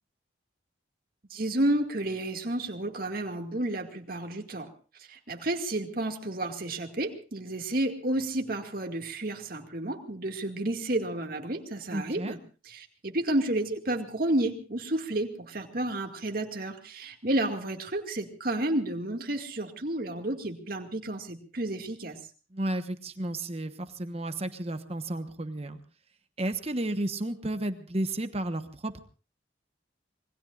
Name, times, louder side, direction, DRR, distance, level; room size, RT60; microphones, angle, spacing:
voice 1, 1.3-4.7 5.1-12.4 12.7-22.2, right 1 dB, 50° right, 4 dB, 2.2 m, -31 dB
voice 2, 11.9-12.4 22.5-25.8 26.4-29.0, right 1 dB, 30° right, 9 dB, 1.2 m, -32 dB
26.5 x 21.5 x 2.5 m, 0.36 s
head